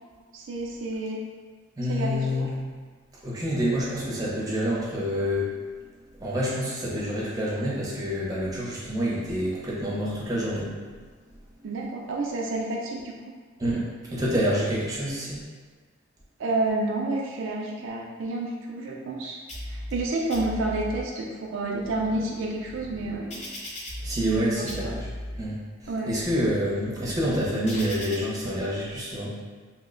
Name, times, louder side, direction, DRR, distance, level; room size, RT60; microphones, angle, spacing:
voice 1, 0.3-1.2 1.9-2.5 11.6-13.3 16.4-19.4 19.6-23.2 24.2-24.7 25.9-26.1, right 2 dB, 70° right, -2 dB, 0.4 m, -29 dB
voice 2, 1.8-2.6 3.2-5.6 6.2-10.7 13.6-15.4 24.0-25.1 25.4-29.3, equal, 15° right, -7 dB, 0.6 m, -27 dB
sound 1, 19.5-20.0 20.3-21.0 21.6-24.4 24.7-25.4 26.0-28.2, left 1 dB, 30° left, 0.5 m, -38 dB
2.7 x 2.1 x 3.7 m, 1.5 s
head